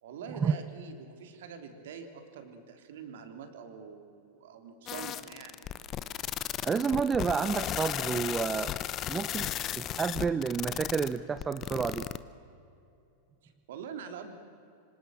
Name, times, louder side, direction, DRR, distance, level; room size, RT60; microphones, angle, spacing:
voice 1, 0.0-5.7 13.4-14.3, right 6 dB, 65° right, 6 dB, 3.3 m, -45 dB
sound 1, 4.9-12.2, left 11 dB, 35° left, 1.0 m, -35 dB
voice 2, 6.6-8.7 9.1-12.1, right 6 dB, 20° right, 12 dB, 0.8 m, -30 dB
27.0 x 25.5 x 7.7 m, 2.6 s
figure-of-eight pair, 95°, 0 cm